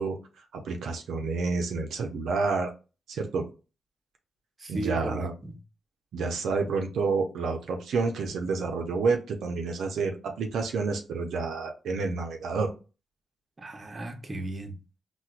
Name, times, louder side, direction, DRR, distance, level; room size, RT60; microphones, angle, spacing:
voice 1, 0.0-2.7 3.1-3.5 4.7-5.3 6.1-12.7, right 4 dB, 80° right, 0.4 m, -29 dB
voice 2, 4.6-5.5 13.6-14.8, right 2 dB, 30° right, 0.7 m, -35 dB
4.4 x 2.1 x 2.3 m
cardioid pair, 80°, 0 cm